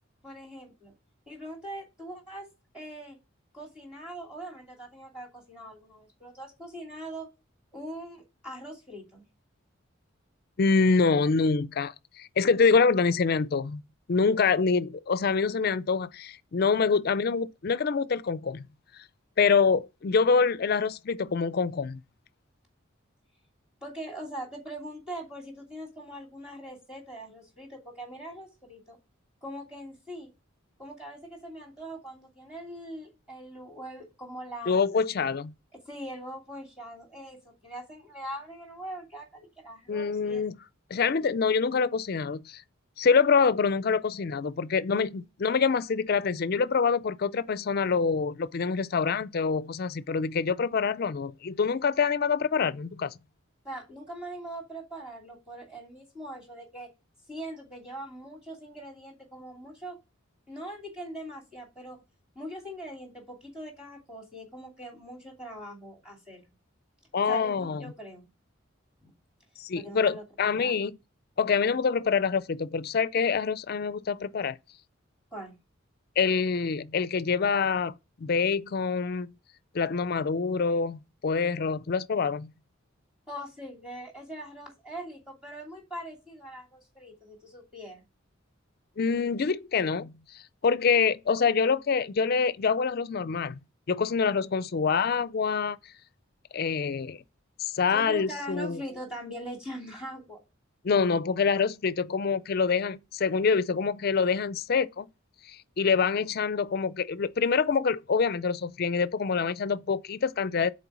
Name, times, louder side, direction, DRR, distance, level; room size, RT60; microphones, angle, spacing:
voice 1, 0.2-0.9 1.3-2.5 2.7-3.2 3.5-7.3 7.7-9.2 23.8-29.0 29.4-30.3 30.8-34.8 35.8-40.4 53.6-56.9 57.3-60.0 60.5-62.0 62.3-66.5 67.3-68.3 69.0-69.1 69.7-70.2 70.5-70.7 75.3-75.6 83.3-88.0 97.9-100.4, right 1 dB, 5° right, 2.7 m, -42 dB
voice 2, 10.6-13.8 14.1-18.7 19.4-22.0 34.7-35.5 39.9-40.6 40.9-42.6 43.0-53.1 67.1-67.8 69.6-71.0 71.4-74.6 76.2-79.3 79.7-82.5 89.0-93.6 93.9-95.8 96.5-97.2 97.6-98.8 100.8-105.1 105.5-110.7, left 5 dB, 50° left, 0.4 m, -26 dB
6.9 x 4.3 x 6.1 m
head